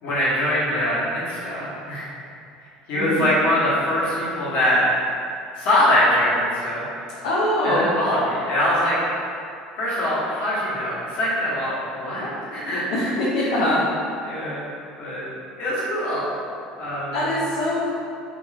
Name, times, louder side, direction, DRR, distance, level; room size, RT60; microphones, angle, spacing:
voice 1, 0.0-2.1 2.9-4.8 5.6-6.8 7.6-9.2 9.8-13.2 13.4-13.5 14.2-14.7 15.0-15.3 15.6-16.3 16.8-17.1, left 1 dB, 65° left, -9 dB, 1.4 m, -23 dB
voice 2, 2.9-3.3 7.2-7.9 12.9-13.9 17.1-18.0, left 1 dB, 85° left, -9 dB, 0.7 m, -22 dB
4.5 x 3.1 x 2.5 m, 2.5 s
hypercardioid pair, 75°, 4 cm